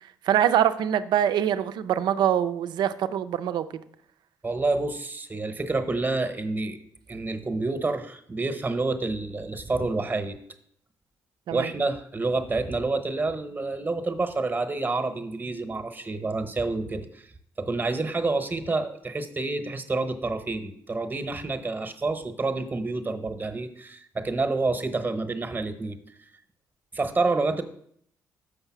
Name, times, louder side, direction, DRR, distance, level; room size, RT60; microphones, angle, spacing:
voice 1, 0.2-3.7 11.5-11.7, right 10 dB, 70° right, 12 dB, 0.5 m, -24 dB
voice 2, 4.4-6.8 7.1-10.4 11.5-17.3 17.6-26.0 26.9-27.6, right 3 dB, 25° right, 9 dB, 1.0 m, -28 dB
6.6 x 5.5 x 5.9 m, 0.67 s
supercardioid pair, 60°, 8 cm